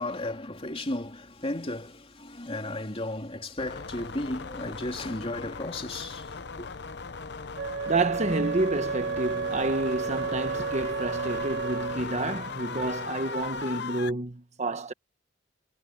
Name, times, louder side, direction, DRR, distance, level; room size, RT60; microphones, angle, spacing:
voice 1, 0.0-6.7, left 1 dB, 30° left, 3.1 m, -34 dB
sound 1, 3.6-14.1, left 4 dB, 65° left, 0.8 m, -38 dB
Wind instrument woodwind instrument, 7.6-12.1, right 5 dB, 75° right, 0.7 m, -32 dB
voice 2, 7.9-14.9, right 2 dB, 40° right, 1.2 m, -29 dB
head